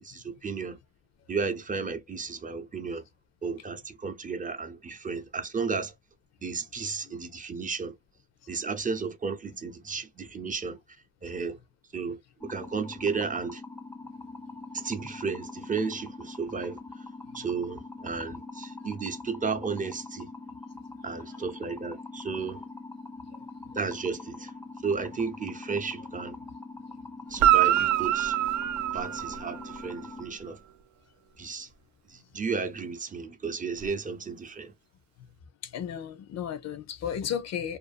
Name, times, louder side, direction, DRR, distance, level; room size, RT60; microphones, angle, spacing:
voice 1, 0.0-0.8 1.3-3.1 3.4-5.9 6.4-8.0 8.5-10.8 11.2-11.6 11.9-13.6 14.7-17.0 17.3-20.3 21.0-22.6 23.7-24.5 24.8-26.4 27.3-28.4 28.9-30.6 31.4-31.7 32.1-34.7, right 5 dB, 25° right, 0.6 m, -33 dB
sound 1, 12.4-30.2, left 3 dB, 5° left, 0.3 m, -43 dB
Guitar, 27.3-29.9 33.8-33.9, right 12 dB, 70° right, 0.5 m, -25 dB
voice 2, 35.6-37.8, left 8 dB, 60° left, 0.6 m, -34 dB
2.6 x 2.4 x 2.4 m
cardioid pair, 90°, 30 cm